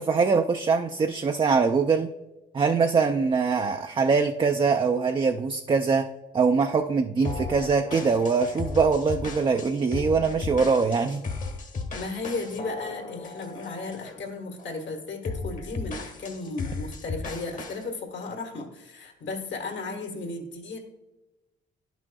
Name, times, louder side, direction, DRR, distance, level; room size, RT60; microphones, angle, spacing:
voice 1, 0.0-2.1 2.5-6.1 6.3-11.2, right 5 dB, 25° right, 6 dB, 0.4 m, -23 dB
sound 1, 7.2-14.2 14.6-14.8 15.2-17.8, left 3 dB, 40° left, 1.2 m, -35 dB
voice 2, 11.9-20.8, left 3 dB, 65° left, 3 dB, 1.6 m, -35 dB
10.5 x 6.1 x 2.3 m, 1.0 s
cardioid pair, 90°, 20 cm